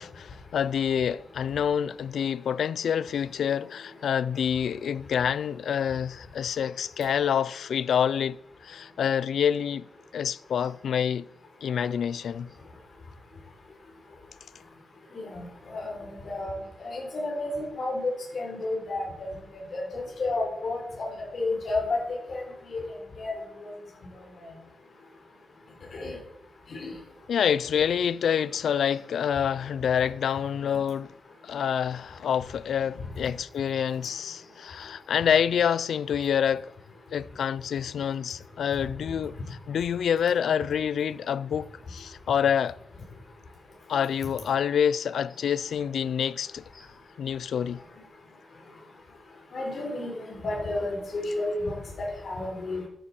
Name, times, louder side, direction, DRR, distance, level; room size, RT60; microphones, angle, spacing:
voice 1, 0.0-8.4 8.6-9.9 10.1-11.3 11.6-12.5 27.3-31.1 31.4-36.7 37.1-39.3 39.7-42.8 43.9-46.6 47.2-47.8, left 8 dB, 75° left, 0.4 m, -27 dB
voice 2, 15.3-16.5 16.8-19.1 19.7-21.1 21.3-22.0 22.3-22.4 22.7-22.8 23.2-23.3 23.6-23.7 25.9-26.2 26.7-26.9 49.5-52.9, left 2 dB, 45° left, 3.8 m, -31 dB
14.0 x 9.9 x 4.4 m
wide cardioid pair, 180°, 0 cm